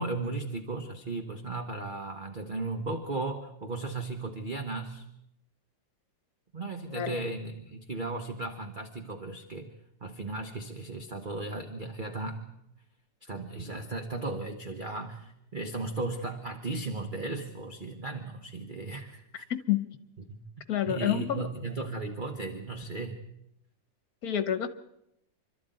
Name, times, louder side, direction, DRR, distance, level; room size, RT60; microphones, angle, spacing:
voice 1, 0.0-5.0 6.5-9.7 10.0-12.5 13.2-19.5 20.3-20.4 20.9-23.2, right 3 dB, 30° right, 5 dB, 1.4 m, -36 dB
voice 2, 19.5-19.9 20.7-21.4 24.2-24.7, left 11 dB, 55° left, 12 dB, 1.6 m, -28 dB
26.5 x 12.5 x 9.1 m, 0.81 s
omnidirectional pair, 1.9 m